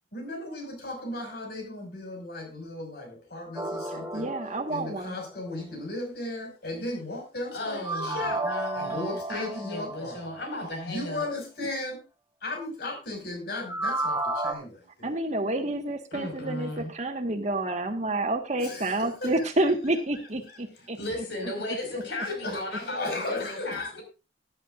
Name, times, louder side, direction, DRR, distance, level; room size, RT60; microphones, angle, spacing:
voice 1, 0.1-4.4 4.7-8.4 8.8-10.4 10.8-12.0 12.4-15.1 16.3-16.4 18.6-19.4 22.2-24.0, left 2 dB, 60° left, 2 dB, 5.6 m, -36 dB
sound 1, 3.6-5.6 7.8-10.5 13.5-14.5, right 2 dB, 15° right, 2.5 m, -33 dB
voice 2, 3.9-5.1 15.0-21.0, right 2 dB, 40° right, 6 dB, 1.5 m, -29 dB
voice 3, 7.5-11.3 16.1-16.9 21.0-24.0, left 1 dB, 75° left, 4 dB, 5.1 m, -35 dB
17.5 x 10.5 x 2.5 m, 0.30 s
head